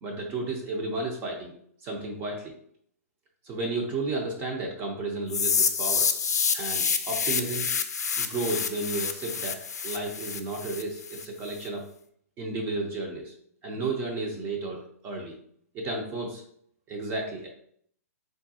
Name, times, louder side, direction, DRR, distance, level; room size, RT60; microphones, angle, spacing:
voice 1, 0.0-1.5 1.8-2.5 3.4-6.1 6.5-7.7 8.2-9.6 9.8-11.9 12.4-13.3 13.6-15.4 15.7-16.4 16.9-17.5, right 2 dB, 25° right, 0 dB, 0.6 m, -32 dB
sound 1, 5.3-11.3, left 6 dB, 80° left, 0.4 m, -28 dB
3.5 x 2.3 x 2.6 m, 0.65 s
hypercardioid pair, 125°, 9 cm